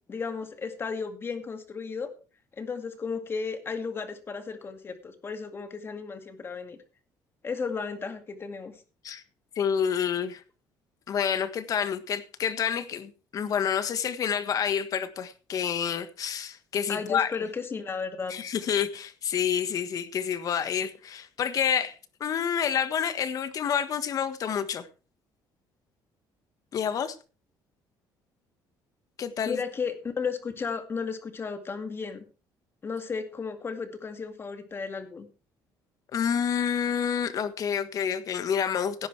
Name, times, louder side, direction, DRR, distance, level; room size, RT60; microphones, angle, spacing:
voice 1, 0.1-2.1 2.6-6.8 7.4-8.7 16.9-18.3 29.5-32.2 32.8-35.3, left 5 dB, 30° left, 2.3 m, -34 dB
voice 2, 9.5-10.4 11.1-17.3 18.3-21.9 22.2-24.9 26.7-27.2 29.2-29.6 36.1-39.1, left 8 dB, 50° left, 1.5 m, -28 dB
17.0 x 10.5 x 3.4 m
cardioid pair, 120°, 8 cm